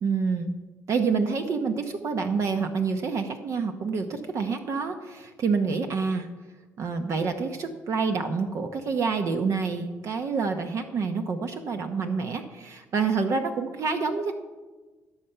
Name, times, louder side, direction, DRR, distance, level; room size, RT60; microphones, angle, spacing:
voice 1, 0.0-0.5 0.9-6.3 6.8-14.3, right 5 dB, 50° right, 6 dB, 0.9 m, -27 dB
17.0 x 6.8 x 5.7 m, 1.3 s
cardioid pair, 100°, 6 cm